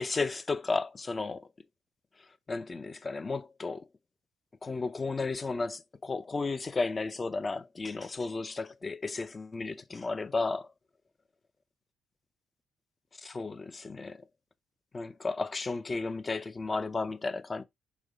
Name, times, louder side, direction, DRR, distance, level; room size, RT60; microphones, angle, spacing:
voice 1, 0.0-1.5 2.5-3.8 4.6-10.7 13.2-14.2 14.9-17.6, left 3 dB, 30° left, 0.6 m, -33 dB
5.2 x 3.6 x 5.1 m
cardioid pair, 90°, 0 cm